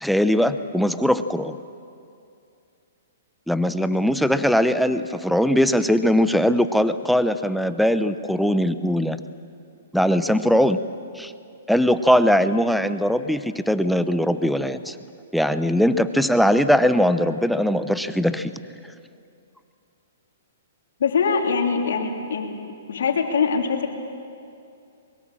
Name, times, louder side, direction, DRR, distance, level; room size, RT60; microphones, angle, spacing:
voice 1, 0.0-1.6 3.5-9.2 9.9-10.8 11.2-11.3 11.7-14.9 15.3-18.5, equal, ahead, 11 dB, 0.7 m, -20 dB
voice 2, 21.0-22.6 22.9-23.9, left 5 dB, 75° left, 1 dB, 3.4 m, -23 dB
23.5 x 22.0 x 7.6 m, 2.5 s
hypercardioid pair, 145°, 0 cm